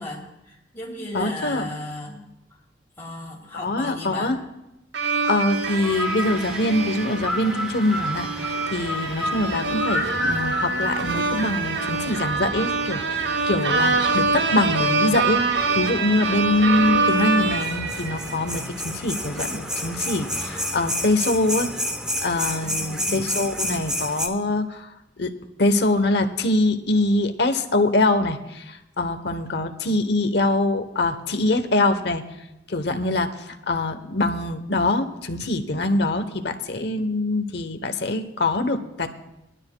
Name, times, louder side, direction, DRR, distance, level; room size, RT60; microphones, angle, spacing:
voice 1, 0.0-2.2 3.0-4.4 22.6-23.5, left 1 dB, 15° left, -4 dB, 3.0 m, -36 dB
voice 2, 1.1-1.7 3.5-4.4 5.3-15.4 15.7-21.7 22.2-24.9 25.2-32.2 32.7-39.1, left 2 dB, 60° left, 8 dB, 0.9 m, -24 dB
sound 1, 4.9-18.6, right 4 dB, 65° right, 0.7 m, -25 dB
sound 2, 5.6-24.3, left 1 dB, 5° right, 0.8 m, -31 dB
21.0 x 12.0 x 2.3 m, 0.90 s
head